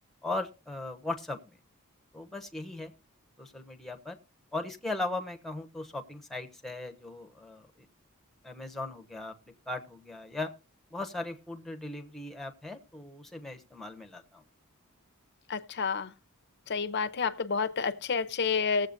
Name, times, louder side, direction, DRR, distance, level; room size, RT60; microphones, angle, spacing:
voice 1, 0.2-1.6 2.1-2.9 3.4-4.2 4.5-7.9 8.4-9.3 9.7-10.5 10.9-14.4, left 2 dB, ahead, 1.1 m, -38 dB
voice 2, 15.5-16.1 16.7-18.9, left 5 dB, 50° left, 0.7 m, -29 dB
20.0 x 7.8 x 2.6 m
head